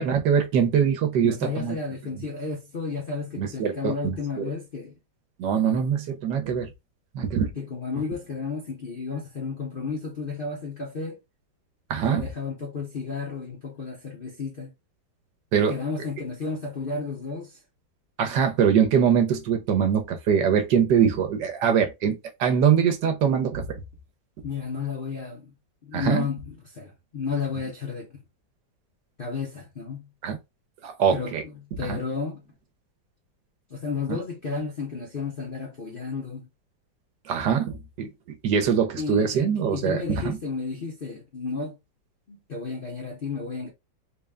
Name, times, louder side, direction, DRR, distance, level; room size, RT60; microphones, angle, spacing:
voice 1, 0.0-1.7 3.4-4.5 5.4-6.7 7.1-7.5 11.9-12.3 15.5-15.7 18.2-23.8 25.9-26.3 30.2-30.4 30.8-31.4 31.9-32.0 34.1-34.2 37.2-38.1 38.4-40.4, right 7 dB, 70° right, 1.4 m, -23 dB
voice 2, 1.2-4.9 7.6-11.2 12.0-14.7 15.7-17.6 24.4-25.5 25.8-28.2 29.2-30.1 31.1-32.4 33.7-36.5 39.0-41.8 42.3-43.7, left 4 dB, 45° left, 0.7 m, -32 dB
4.0 x 2.2 x 3.5 m
omnidirectional pair, 2.0 m